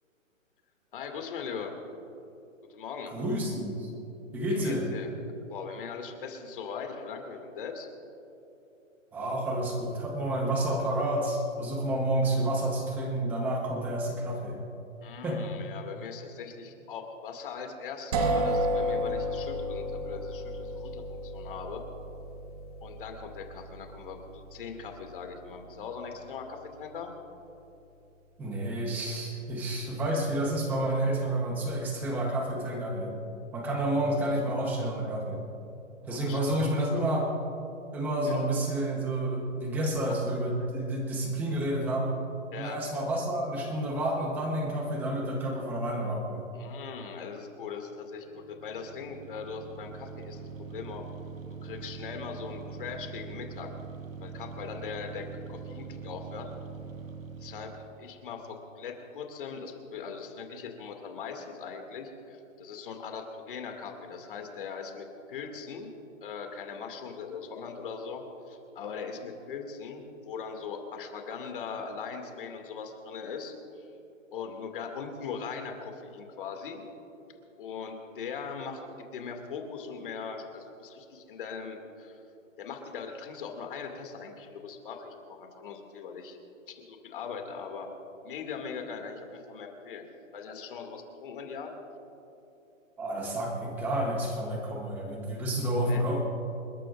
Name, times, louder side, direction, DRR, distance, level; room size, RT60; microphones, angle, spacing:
voice 1, 0.9-1.8 2.7-3.1 4.5-5.1 5.5-7.9 15.0-21.9 22.8-27.1 36.1-36.4 38.2-38.5 42.5-42.8 46.5-51.1 51.6-53.7 54.2-56.5 57.4-65.9 66.2-73.9 74.3-76.8 77.6-78.8 79.1-82.2 82.6-86.4 86.7-87.9 88.2-90.1 90.3-91.7 95.8-96.1, left 6 dB, 40° left, 3 dB, 2.1 m, -40 dB
voice 2, 3.1-3.9 4.3-4.8 9.1-14.6 15.2-15.4 28.4-33.1 33.5-35.4 36.1-37.3 37.9-42.1 42.6-46.4 93.0-96.2, right 1 dB, 5° right, 0 dB, 0.8 m, -29 dB
sound 1, 18.1-27.9, equal, 30° right, 1.0 m, -34 dB
sound 2, 48.2-58.1, right 5 dB, 90° right, 1.3 m, -43 dB
28.5 x 13.0 x 2.4 m, 2.9 s
hypercardioid pair, 165°, 39 cm